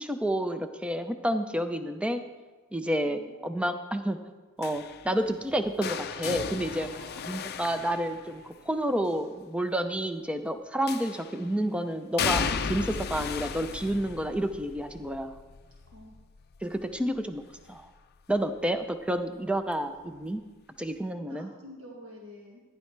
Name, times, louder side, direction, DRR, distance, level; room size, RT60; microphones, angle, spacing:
voice 1, 0.0-2.2 2.7-4.2 4.6-6.9 7.3-15.3 16.6-17.4 17.7-17.9 18.3-20.4 20.8-21.5, right 1 dB, 5° right, 8 dB, 0.5 m, -30 dB
voice 2, 3.0-3.5 5.1-5.2 6.8-7.2 15.9-16.2 18.5-18.7 21.2-22.6, equal, 60° right, -2 dB, 1.8 m, -48 dB
sound 1, 4.6-8.7 10.9-11.5 12.2-18.0 18.3-18.7 20.0-20.1, left 6 dB, 45° left, 0.5 m, -35 dB
14.5 x 10.5 x 3.3 m, 1.3 s
head